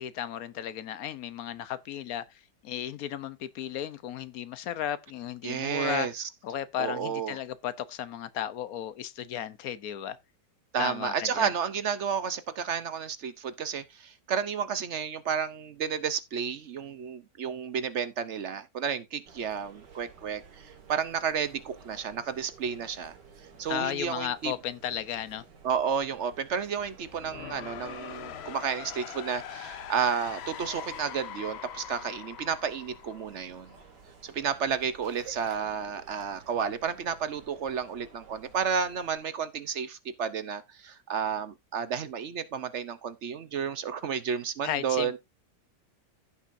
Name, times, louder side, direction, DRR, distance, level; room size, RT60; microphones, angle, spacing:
voice 1, 0.0-6.1 6.4-10.2 10.8-11.5 23.7-25.4 44.6-45.2, left 10 dB, 65° left, 1.1 m, -34 dB
voice 2, 5.4-6.3 6.8-7.4 10.7-23.1 23.6-24.5 25.6-33.7 34.2-45.2, right 7 dB, 55° right, 0.8 m, -31 dB
sound 1, 19.2-39.2, right 5 dB, 85° right, 2.3 m, -53 dB
sound 2, 27.0-34.0, left 10 dB, 90° left, 0.5 m, -42 dB
15.5 x 5.7 x 2.6 m
omnidirectional pair, 1.8 m